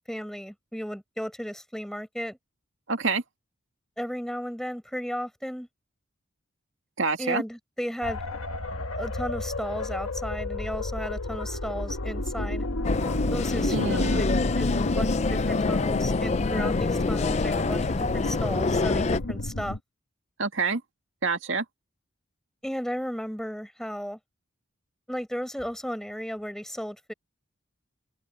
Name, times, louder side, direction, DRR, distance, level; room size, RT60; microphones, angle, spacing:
voice 1, 0.1-2.4 4.0-5.7 7.2-8.2 8.9-12.7 13.3-14.2 14.6-19.8 22.6-24.2 25.1-27.1, equal, ahead, 6.0 m, -34 dB
voice 2, 2.9-3.2 7.0-7.4 13.7-14.2 20.4-20.8 21.2-21.6, right 4 dB, 70° right, 2.2 m, -27 dB
sound 1, 8.0-19.8, left 2 dB, 90° left, 1.4 m, -30 dB
sound 2, 12.8-19.2, left 3 dB, 30° left, 0.4 m, -27 dB
open air
head